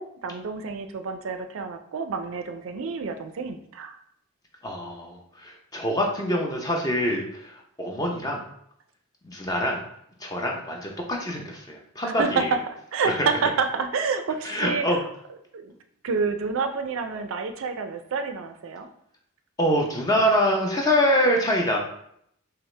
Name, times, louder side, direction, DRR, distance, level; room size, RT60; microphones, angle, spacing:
voice 1, 0.0-4.0 12.0-15.0 15.5-15.7 16.0-18.9, right 5 dB, 70° right, 7 dB, 0.4 m, -28 dB
voice 2, 4.6-8.4 9.2-9.8 10.2-12.5 13.0-13.3 14.4-15.0 19.6-21.8, equal, 15° left, 0 dB, 0.6 m, -25 dB
5.4 x 2.1 x 3.2 m, 0.72 s
head